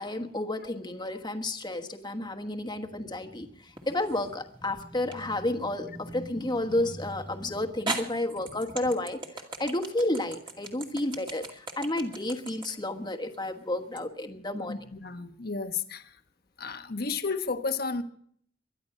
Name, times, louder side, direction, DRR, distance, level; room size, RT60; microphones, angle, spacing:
voice 1, 0.0-14.8, left 1 dB, 25° left, 6 dB, 1.3 m, -31 dB
sound 1, 3.8-4.3 5.1-5.2 7.1-7.2 7.9-14.1, right 3 dB, 25° right, 2.2 m, -38 dB
voice 2, 14.7-16.1 16.6-18.0, left 4 dB, 55° left, 8 dB, 1.2 m, -32 dB
23.0 x 10.5 x 5.5 m, 0.63 s
head